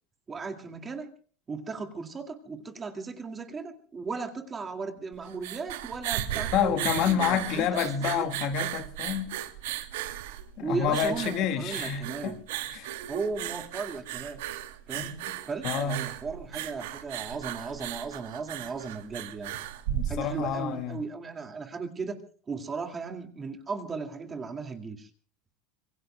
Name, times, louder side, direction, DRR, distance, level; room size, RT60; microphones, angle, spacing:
voice 1, 0.3-1.1 1.5-8.3 10.6-12.4 13.1-14.4 14.9-15.2 15.5-19.5 20.1-22.2 22.5-25.1, right 4 dB, 15° right, 2.2 m, -36 dB
sound 1, 5.1-20.6, right 13 dB, 80° right, 2.4 m, -36 dB
voice 2, 6.5-9.3 10.6-12.4 12.7-12.9 14.9-15.4 15.6-16.0 19.9-21.0, left 8 dB, 40° left, 1.8 m, -29 dB
26.0 x 23.5 x 2.2 m
supercardioid pair, 170°, 0 cm